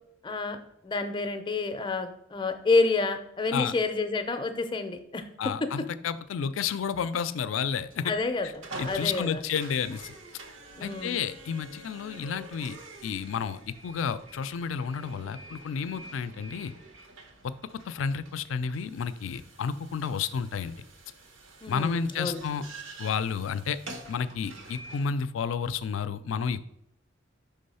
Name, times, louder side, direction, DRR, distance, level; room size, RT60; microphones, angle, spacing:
voice 1, 0.2-0.6 0.8-5.2 8.0-9.4 10.8-11.2 21.6-22.4, left 3 dB, 25° left, 8 dB, 0.5 m, -29 dB
voice 2, 5.4-8.1 8.4-8.5 8.8-10.1 10.8-12.8 13.0-16.7 17.4-17.5 17.9-20.7 21.7-22.6 23.0-23.8 24.1-26.6, left 6 dB, 80° left, 14 dB, 0.4 m, -31 dB
sound 1, 7.9-25.1, right 2 dB, 80° right, 0.9 m, -47 dB
5.4 x 3.5 x 5.4 m, 0.72 s
head